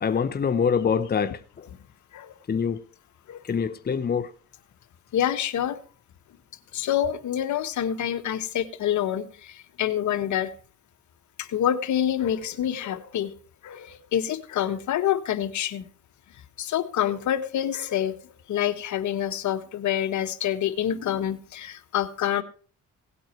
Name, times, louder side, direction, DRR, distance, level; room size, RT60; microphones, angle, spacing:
voice 1, 0.0-1.4 2.5-2.8 3.5-4.3, left 6 dB, 30° left, 0.9 m, -24 dB
voice 2, 5.1-5.8 6.7-10.5 11.4-13.3 13.6-15.8 16.6-18.2 18.5-22.4, left 10 dB, 70° left, 1.5 m, -27 dB
17.5 x 8.5 x 4.6 m
cardioid pair, 90°, 30 cm